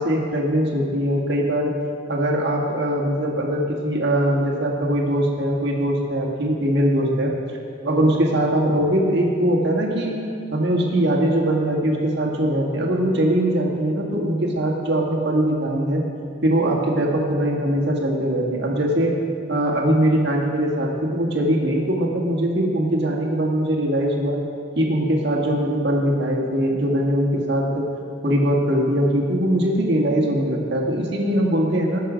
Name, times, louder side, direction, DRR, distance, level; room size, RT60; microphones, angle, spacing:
voice 1, 0.0-1.7 2.1-7.3 7.8-10.2 10.5-16.0 16.4-19.1 19.5-24.4 24.7-27.9 28.2-32.0, right 1 dB, 60° right, 0 dB, 1.7 m, -21 dB
17.5 x 6.6 x 5.1 m, 2.4 s
head